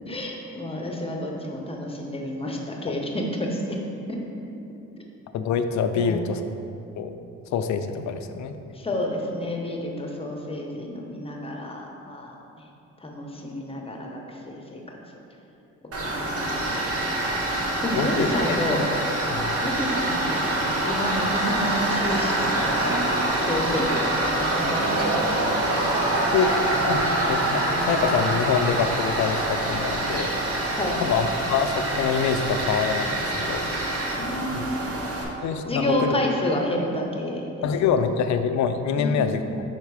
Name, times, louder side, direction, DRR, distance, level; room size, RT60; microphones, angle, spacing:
voice 1, 0.1-3.8 4.1-4.2 5.9-6.2 8.7-12.7 13.0-15.0 16.0-16.5 17.1-17.4 17.8-18.8 19.6-20.5 20.8-22.9 23.3-25.5 30.7-31.0 34.2-34.7 35.7-37.5 39.0-39.3, left 1 dB, 20° left, 0 dB, 0.9 m, -30 dB
voice 2, 5.3-6.4 7.0-7.2 7.5-8.5 18.0-18.3 19.3-19.5 26.3-30.3 31.0-33.6 34.5-34.6 35.4-36.1 37.6-39.4, left 6 dB, 70° left, 8 dB, 0.5 m, -25 dB
Tools, 15.9-35.2, right 1 dB, 50° right, 1.1 m, -25 dB
5.6 x 4.5 x 4.8 m, 2.8 s
cardioid pair, 90°, 30 cm